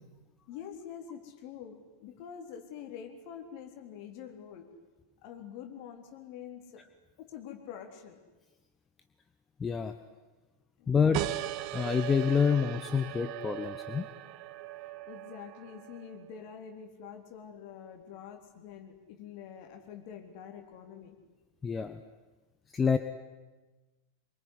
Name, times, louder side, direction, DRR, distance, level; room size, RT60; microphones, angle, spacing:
voice 1, 0.5-4.7 5.2-6.8 7.2-8.2 10.8-11.1 15.1-21.2, left 8 dB, 45° left, 5 dB, 3.7 m, -46 dB
voice 2, 9.6-9.9 10.9-11.2 11.7-14.1 21.6-22.0 22.7-23.0, left 6 dB, 20° left, 9 dB, 1.2 m, -27 dB
sound 1, 11.1-16.3, right 15 dB, 45° right, 1.0 m, -38 dB
24.5 x 23.0 x 9.9 m, 1.2 s
figure-of-eight pair, 90°, 0 cm